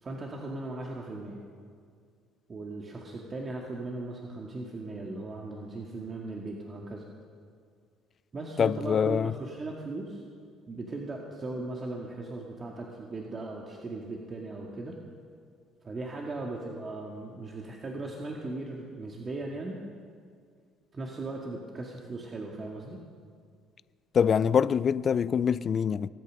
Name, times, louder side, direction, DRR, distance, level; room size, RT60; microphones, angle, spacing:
voice 1, 0.0-1.4 2.5-7.0 8.3-10.2 10.7-15.0 15.8-19.8 20.9-23.0, right 2 dB, 35° right, 1.9 m, -38 dB
voice 2, 8.6-9.3 24.1-26.1, left 7 dB, 45° left, 0.4 m, -24 dB
23.5 x 8.8 x 6.4 m
hypercardioid pair, 65°, 0 cm